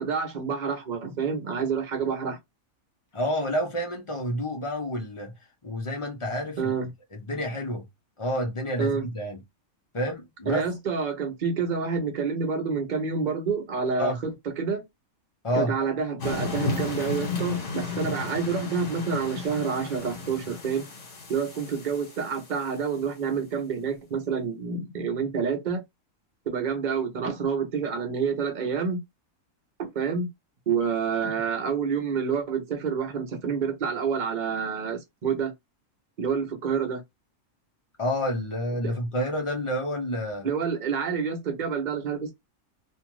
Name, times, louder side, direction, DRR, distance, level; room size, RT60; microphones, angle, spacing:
voice 1, 0.0-2.4 6.6-6.9 8.8-9.1 10.5-14.3 14.6-14.8 15.5-20.8 21.3-25.8 26.5-29.0 29.8-30.3 30.7-35.5 36.2-37.0 38.8-38.9 40.4-42.3, right 6 dB, 40° right, 0.7 m, -28 dB
voice 2, 3.1-5.3 5.6-6.7 7.1-7.8 8.2-9.4 9.9-10.6 14.0-14.2 15.4-15.7 38.0-40.5, equal, 30° left, 0.6 m, -29 dB
sound 1, 16.2-22.9, left 3 dB, 60° left, 1.4 m, -34 dB
2.7 x 2.4 x 3.0 m
omnidirectional pair, 1.5 m